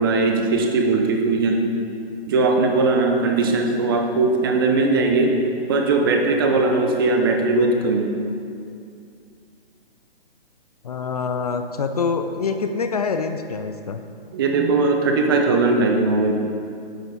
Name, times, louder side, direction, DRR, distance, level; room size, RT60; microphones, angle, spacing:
voice 1, 0.0-1.6 2.3-5.4 5.7-8.1 14.3-16.3, right 3 dB, 20° right, 3 dB, 0.6 m, -19 dB
voice 2, 10.8-14.0, left 5 dB, 40° left, 7 dB, 0.4 m, -25 dB
10.5 x 8.0 x 4.0 m, 2.5 s
hypercardioid pair, 150°, 31 cm